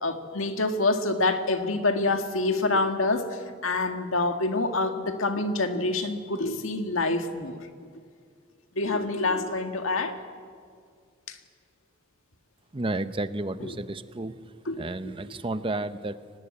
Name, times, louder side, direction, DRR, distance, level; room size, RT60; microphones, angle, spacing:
voice 1, 0.0-7.6 8.8-10.2 11.3-11.4 13.6-13.7 14.7-14.9, left 2 dB, 85° left, 6 dB, 1.8 m, -26 dB
voice 2, 12.7-14.4 14.8-16.2, right 2 dB, 25° right, 12 dB, 0.7 m, -31 dB
23.0 x 19.5 x 8.8 m, 2.1 s
head